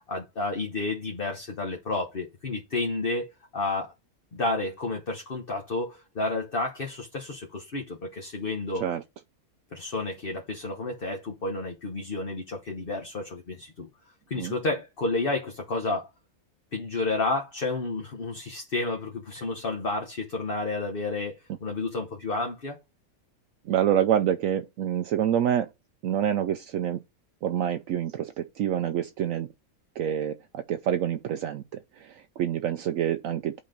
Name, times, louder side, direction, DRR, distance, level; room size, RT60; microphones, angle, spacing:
voice 1, 0.1-3.9 4.3-8.8 9.7-13.9 14.3-16.1 16.7-22.8, left 3 dB, 40° left, 1.2 m, -31 dB
voice 2, 23.7-25.7 26.0-27.0 27.4-29.5 30.0-33.6, right 10 dB, 70° right, 0.9 m, -27 dB
8.5 x 4.0 x 5.1 m
omnidirectional pair, 1.5 m